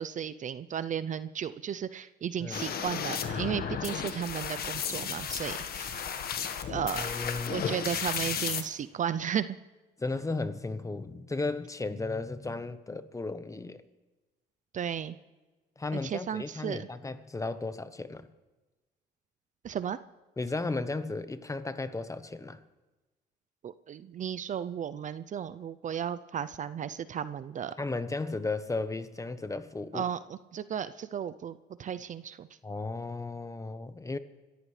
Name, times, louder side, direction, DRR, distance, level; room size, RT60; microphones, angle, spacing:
voice 1, 0.0-6.0 6.7-9.5 14.7-15.2 15.9-16.9 19.6-20.0 23.6-27.7 29.9-32.5, right 8 dB, 45° right, 0.6 m, -34 dB
sound 1, 2.5-8.6, left 7 dB, 60° left, 1.6 m, -34 dB
voice 2, 7.0-7.7 10.0-13.8 15.8-18.3 20.4-22.6 27.8-30.0 32.6-34.2, left 3 dB, 20° left, 1.1 m, -35 dB
26.5 x 14.5 x 3.3 m
supercardioid pair, 75°, 18 cm